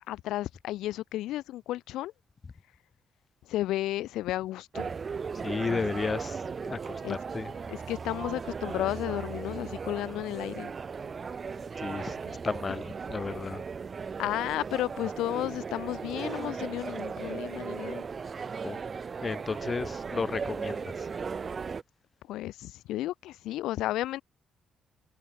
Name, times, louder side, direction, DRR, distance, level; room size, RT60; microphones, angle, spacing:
voice 1, 0.1-2.1 3.5-4.9 5.7-5.8 7.0-7.2 7.7-10.7 14.2-18.0 22.3-24.2, left 15 dB, 90° left, 0.7 m, -33 dB
sound 1, 4.7-21.8, right 5 dB, 40° right, 0.7 m, -37 dB
voice 2, 5.4-6.4 6.7-7.5 11.8-12.2 12.4-13.6 18.6-18.8 19.2-20.9, left 4 dB, 35° left, 0.7 m, -33 dB
cardioid pair, 90°, 0 cm